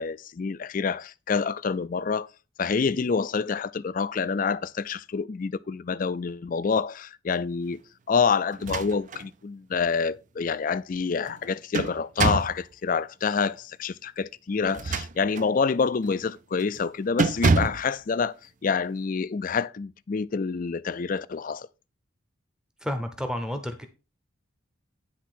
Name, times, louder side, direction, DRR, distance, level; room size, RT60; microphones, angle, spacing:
voice 1, 0.0-2.3 2.6-7.8 8.1-18.3 18.6-21.7, left 5 dB, 40° left, 0.4 m, -27 dB
sound 1, 8.5-9.3 9.7-9.8 11.3-12.6 14.6-15.5 16.0-16.3 16.6-16.8 17.2-17.9, right 4 dB, 35° right, 0.4 m, -26 dB
voice 2, 22.8-23.9, equal, 5° right, 0.7 m, -31 dB
10.0 x 3.6 x 6.0 m
head